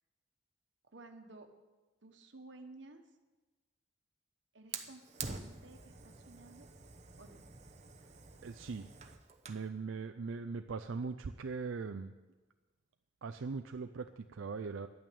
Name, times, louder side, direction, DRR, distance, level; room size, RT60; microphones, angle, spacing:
voice 1, 0.9-1.5 2.0-3.0 4.5-6.7 7.2-7.4, right 2 dB, 70° right, 6 dB, 1.3 m, -54 dB
Fire, 4.7-9.7, right 5 dB, 35° right, 0.9 m, -47 dB
voice 2, 8.4-8.9 9.5-12.1 13.2-14.9, right 4 dB, 90° right, 8 dB, 0.5 m, -40 dB
11.0 x 8.9 x 8.7 m, 1.2 s
head